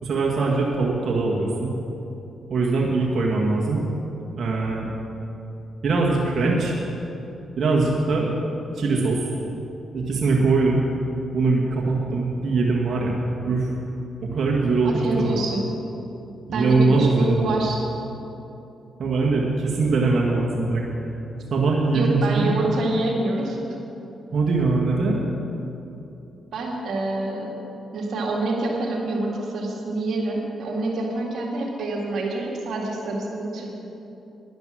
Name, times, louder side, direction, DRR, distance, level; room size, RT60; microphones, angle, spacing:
voice 1, 0.0-1.7 2.5-3.8 4.4-4.9 5.8-6.8 7.6-8.3 8.7-9.3 9.9-10.8 11.3-13.2 13.4-13.7 14.2-15.4 16.5-17.5 19.0-20.8 21.5-22.5 24.3-25.2, right 3 dB, 60° right, -3 dB, 1.8 m, -21 dB
voice 2, 14.8-15.6 16.5-17.8 21.9-23.6 26.5-27.5 27.9-33.7, right 2 dB, 75° right, -1 dB, 2.0 m, -26 dB
11.0 x 10.5 x 6.4 m, 2.9 s
supercardioid pair, 55°, 0 cm